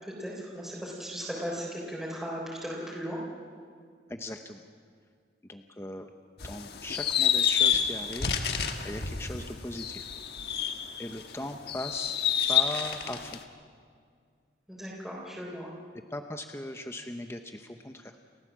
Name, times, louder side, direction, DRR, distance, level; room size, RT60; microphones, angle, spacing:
voice 1, 0.0-3.2 14.7-15.7, equal, ahead, -6 dB, 3.9 m, -37 dB
voice 2, 4.1-4.6 5.4-6.1 6.4-8.4 8.8-10.1 11.0-12.2 12.5-13.4 15.9-18.2, left 1 dB, 15° left, 5 dB, 0.8 m, -39 dB
sound 1, 6.4-11.2 11.7-13.4, left 8 dB, 60° left, 1.4 m, -28 dB
30.0 x 15.0 x 7.4 m, 2.1 s
head